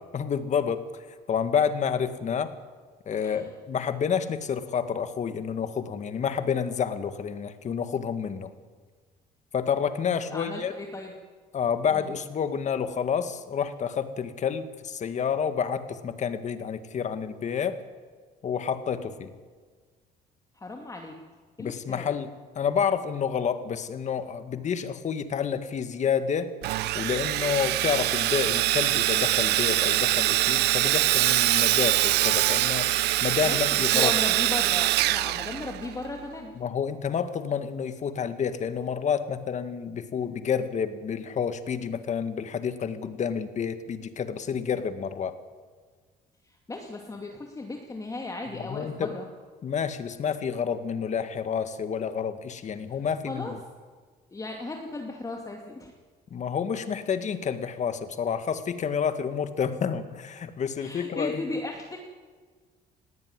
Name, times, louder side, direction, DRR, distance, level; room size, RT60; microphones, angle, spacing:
voice 1, 0.1-0.9 1.3-2.5 3.1-8.5 9.5-10.7 11.5-17.8 18.4-19.3 21.6-22.3 22.6-26.5 26.9-32.9 33.2-34.2 36.6-45.4 48.5-49.2 49.6-53.6 56.3-61.5, left 7 dB, 45° left, 10 dB, 1.8 m, -29 dB
voice 2, 3.1-3.5 10.3-11.1 11.9-12.1 20.6-21.1 21.6-22.1 33.4-36.5 46.7-49.3 53.3-53.5 54.3-55.9 60.8-62.0, left 2 dB, 20° left, 2 dB, 2.4 m, -36 dB
Sawing, 26.6-36.1, right 17 dB, 80° right, 0.7 m, -24 dB
19.0 x 16.0 x 9.8 m, 1.5 s
cardioid pair, 110°, 17 cm